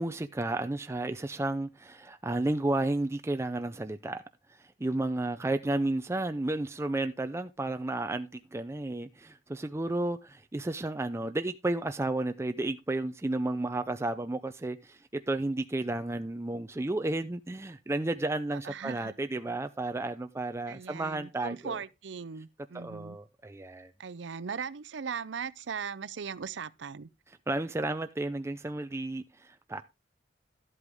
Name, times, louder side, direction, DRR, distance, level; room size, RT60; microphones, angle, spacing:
voice 1, 0.0-4.2 4.8-21.8 22.7-23.9 27.5-29.8, right 2 dB, 15° right, 0.4 m, -32 dB
voice 2, 18.5-19.1 20.7-23.2 24.0-27.1, right 6 dB, 75° right, 0.6 m, -39 dB
12.5 x 8.1 x 3.5 m
head